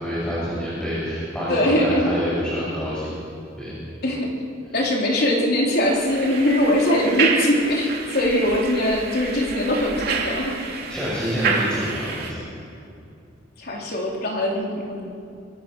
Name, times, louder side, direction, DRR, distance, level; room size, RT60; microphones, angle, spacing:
voice 1, 0.0-3.1 3.6-3.8 10.9-12.4, equal, 5° left, -9 dB, 6.5 m, -27 dB
voice 2, 1.5-2.4 4.0-4.3 4.7-10.8 13.6-15.0, left 1 dB, 55° left, -2 dB, 4.1 m, -22 dB
sound 1, 5.8-12.3, right 5 dB, 55° right, 2.9 m, -28 dB
25.0 x 23.5 x 6.5 m, 2.5 s
head